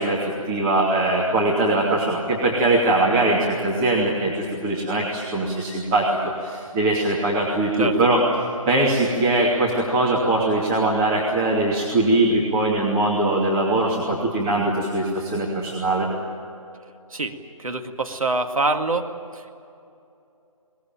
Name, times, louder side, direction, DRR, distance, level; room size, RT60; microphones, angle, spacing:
voice 1, 0.0-6.1 6.4-8.2 8.7-16.1, right 2 dB, 15° right, -5 dB, 2.7 m, -21 dB
voice 2, 17.1-19.5, right 2 dB, 75° right, 4 dB, 2.1 m, -25 dB
22.5 x 20.0 x 9.1 m, 2.7 s
figure-of-eight pair, 145°, 18 cm